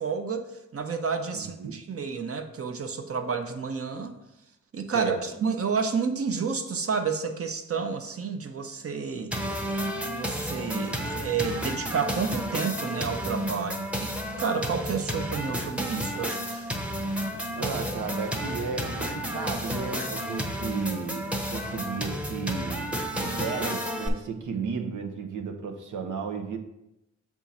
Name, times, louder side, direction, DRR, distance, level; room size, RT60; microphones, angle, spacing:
voice 1, 0.0-4.2 4.7-9.3 10.0-16.7, right 5 dB, 50° right, 6 dB, 0.8 m, -30 dB
voice 2, 1.3-1.8 4.9-5.2 17.4-26.6, right 5 dB, 90° right, 4 dB, 0.8 m, -34 dB
sound 1, 9.3-24.1, equal, 5° right, 0.8 m, -31 dB
7.1 x 3.6 x 4.2 m, 0.90 s
cardioid pair, 85°, 29 cm